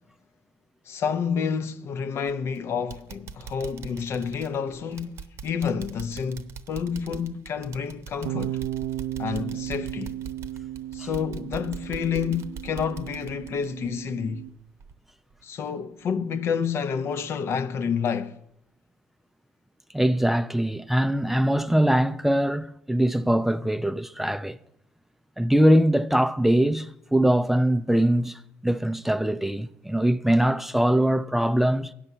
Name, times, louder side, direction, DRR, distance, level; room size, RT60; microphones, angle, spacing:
voice 1, 0.9-8.6 9.2-10.2 10.9-14.4 15.4-18.4, left 6 dB, 50° left, 0.6 m, -29 dB
sound 1, 2.2-2.6 2.9-14.5 14.8-14.9 15.4-15.5, right 6 dB, 50° right, 0.8 m, -42 dB
Bass guitar, 8.2-14.5, right 13 dB, 75° right, 0.3 m, -35 dB
voice 2, 19.9-24.6 25.4-31.9, right 1 dB, 5° right, 0.4 m, -22 dB
9.8 x 6.0 x 6.7 m
hypercardioid pair, 60°, 6 cm